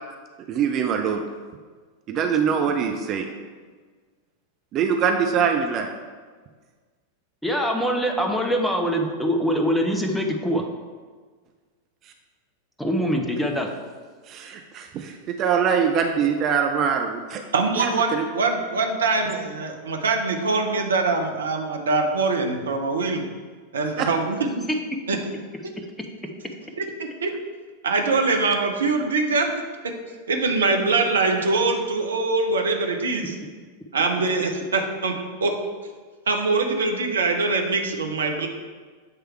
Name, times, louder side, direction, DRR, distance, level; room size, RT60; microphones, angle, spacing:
voice 1, 0.5-1.2 2.1-3.3 4.7-5.9 14.3-17.4 17.8-18.2 24.0-24.1, right 7 dB, 35° right, 4 dB, 0.5 m, -23 dB
voice 2, 7.4-10.6 12.8-13.7, equal, 5° left, 2 dB, 0.7 m, -23 dB
voice 3, 17.5-23.2 23.7-24.6 25.1-25.2 26.8-27.4 27.8-29.9 30.3-33.4 33.9-35.6 36.3-38.5, right 3 dB, 65° right, 4 dB, 0.8 m, -23 dB
7.8 x 3.3 x 4.5 m, 1.5 s
figure-of-eight pair, 90°, 0 cm